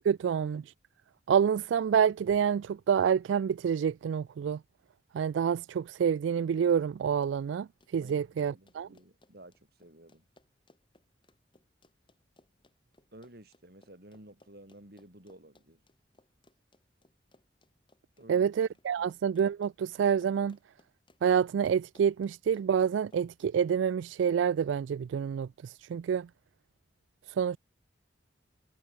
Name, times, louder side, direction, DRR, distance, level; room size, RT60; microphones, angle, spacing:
voice 1, 0.0-0.7 1.3-4.6 5.1-7.7 7.9-8.9 18.3-20.6 21.2-26.3 27.4-27.6, right 7 dB, 80° right, 0.3 m, -27 dB
Run, 7.0-23.5, left 1 dB, 25° left, 5.4 m, -64 dB
voice 2, 8.0-10.2 13.1-15.8 18.2-18.7 19.0-19.1, right 1 dB, 55° right, 4.7 m, -54 dB
head